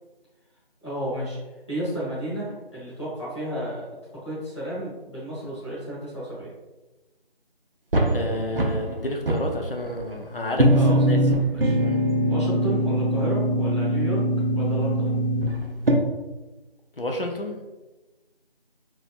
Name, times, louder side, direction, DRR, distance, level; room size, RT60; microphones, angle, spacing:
voice 1, 0.8-1.4 1.7-3.9 4.2-6.5 10.7-11.8 12.3-14.2 14.5-15.3, right 1 dB, 30° left, -9 dB, 1.1 m, -32 dB
sound 1, 7.9-9.0 9.3-10.1 10.6-15.9, right 1 dB, 65° right, 0.7 m, -22 dB
voice 2, 8.1-11.2 11.8-12.0 17.0-17.6, left 1 dB, 60° left, 2 dB, 0.7 m, -30 dB
4.1 x 3.0 x 2.3 m, 1.1 s
figure-of-eight pair, 170°, 31 cm